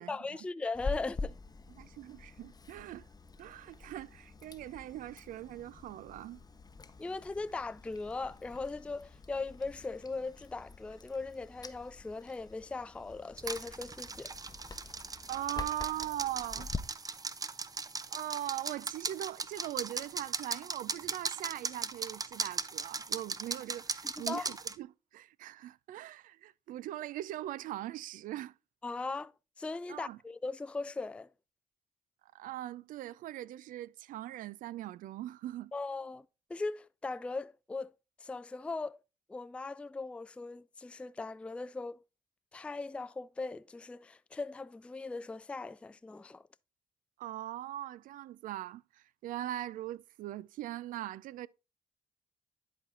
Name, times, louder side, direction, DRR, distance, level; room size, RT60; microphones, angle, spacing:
voice 1, 0.0-1.3 7.0-14.3 24.0-24.5 28.8-29.3 29.6-31.3 35.7-36.2 36.5-37.9 38.2-39.0 39.3-42.0 42.5-46.4, left 3 dB, 10° left, 0.3 m, -39 dB
Chewing mastication, 0.7-16.8, left 3 dB, 25° left, 0.8 m, -46 dB
voice 2, 1.8-3.0 3.4-6.4 15.3-16.7 18.1-28.5 29.9-30.2 32.3-35.7 47.2-51.5, right 14 dB, 70° right, 0.4 m, -40 dB
sound 1, 13.4-24.7, right 4 dB, 25° right, 0.6 m, -39 dB
10.5 x 4.3 x 3.7 m
supercardioid pair, 60°, 14 cm